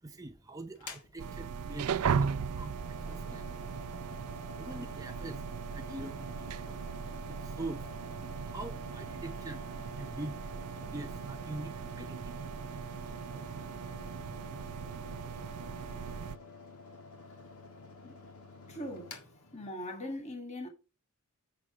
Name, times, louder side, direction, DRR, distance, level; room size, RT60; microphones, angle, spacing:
voice 1, 0.0-3.5 4.6-5.5 5.7-7.9 8.4-12.5 12.9-13.0 13.4-13.5, right 2 dB, 15° right, 0.6 m, -44 dB
Mechanical fan, 0.8-20.1, left 3 dB, 90° left, 1.9 m, -50 dB
sound 1, 1.2-16.4, right 6 dB, 90° right, 0.4 m, -38 dB
voice 2, 18.7-19.2 19.5-20.7, left 1 dB, 30° left, 1.8 m, -40 dB
7.7 x 6.2 x 4.8 m
head